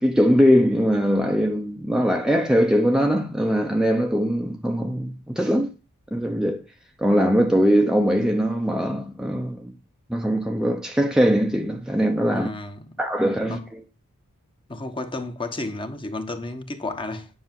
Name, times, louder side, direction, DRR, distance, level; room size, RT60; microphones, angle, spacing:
voice 1, 0.0-5.7 6.1-6.6 7.0-9.7 10.1-12.5 13.0-13.8, equal, 5° right, 0.8 m, -21 dB
voice 2, 12.3-12.9 13.4-13.7 14.7-17.3, left 2 dB, 20° left, 1.3 m, -32 dB
10.0 x 6.1 x 7.6 m
head